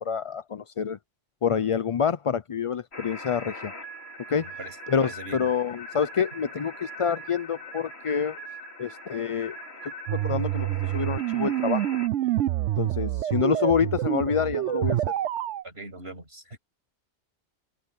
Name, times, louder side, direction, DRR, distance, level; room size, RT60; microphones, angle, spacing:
voice 1, 0.0-1.0 1.4-3.7 4.3-4.5 4.9-8.4 8.8-9.6 10.1-10.7 10.9-11.9 12.8-15.0, left 7 dB, 45° left, 0.4 m, -27 dB
sound 1, 2.9-12.1, equal, 60° left, 3.3 m, -41 dB
voice 2, 4.4-5.5 15.6-16.6, right 2 dB, 60° right, 7.2 m, -41 dB
sound 2, 10.1-15.6, right 13 dB, 80° right, 1.0 m, -27 dB
omnidirectional pair, 1.2 m